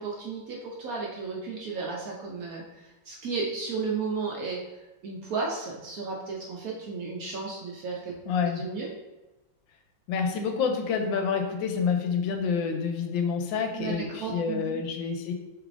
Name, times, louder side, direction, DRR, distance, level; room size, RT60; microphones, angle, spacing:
voice 1, 0.0-4.6 5.0-8.1 8.4-8.9 13.8-14.8, right 4 dB, 65° right, -2 dB, 0.9 m, -34 dB
voice 2, 8.3-8.6 10.1-15.3, left 6 dB, 85° left, 5 dB, 1.3 m, -28 dB
6.1 x 3.3 x 2.6 m, 1.1 s
omnidirectional pair, 2.0 m